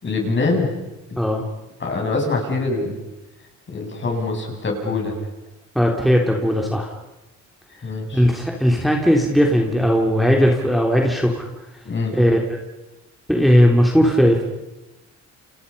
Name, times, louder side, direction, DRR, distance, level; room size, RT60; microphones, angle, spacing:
voice 1, 0.0-0.7 1.8-3.0 3.7-5.1 7.8-8.2 11.8-12.2, left 3 dB, 40° left, 1 dB, 7.9 m, -24 dB
voice 2, 5.8-6.9 8.1-11.4 12.1-12.6 13.3-14.4, equal, ahead, 0 dB, 3.5 m, -17 dB
29.5 x 27.5 x 5.6 m, 1.0 s
cardioid pair, 90°, 30 cm